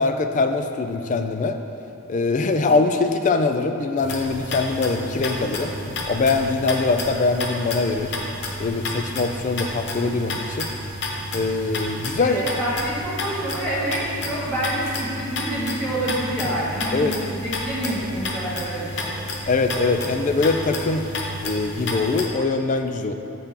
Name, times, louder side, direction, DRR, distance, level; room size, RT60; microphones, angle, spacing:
voice 1, 0.0-1.6 2.1-5.7 6.1-8.1 8.6-10.7 11.3-12.4 16.9-17.1 19.5-21.1 21.4-23.1, left 3 dB, 35° left, 7 dB, 0.3 m, -22 dB
sound 1, 4.0-22.3, left 1 dB, 55° left, 0.7 m, -31 dB
voice 2, 12.2-19.1, right 1 dB, 5° left, -9 dB, 1.6 m, -27 dB
6.9 x 5.8 x 3.7 m, 2.8 s
head